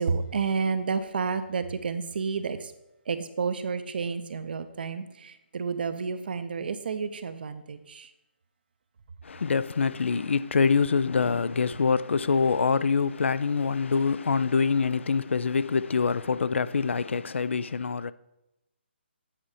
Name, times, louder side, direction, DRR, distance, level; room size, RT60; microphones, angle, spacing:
voice 1, 0.0-2.7 3.1-8.1, right 5 dB, 55° right, 0.6 m, -30 dB
voice 2, 9.2-18.1, left 5 dB, 85° left, 0.4 m, -25 dB
8.8 x 4.2 x 4.8 m
hypercardioid pair, 165°, 6 cm